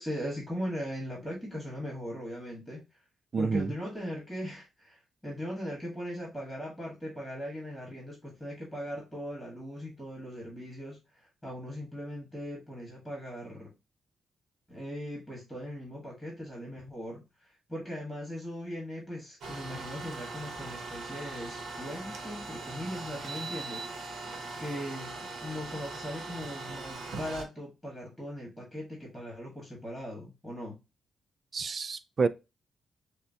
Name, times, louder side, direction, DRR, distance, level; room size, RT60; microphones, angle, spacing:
voice 1, 0.0-2.9 3.4-13.7 14.7-17.2 17.7-23.9 24.6-30.8, equal, 5° left, 1.7 m, -39 dB
voice 2, 3.3-3.7 31.5-32.3, right 4 dB, 40° right, 0.3 m, -28 dB
sound 1, 19.4-27.4, right 3 dB, 65° right, 0.9 m, -40 dB
6.5 x 2.2 x 2.7 m
cardioid pair, 120°, 0 cm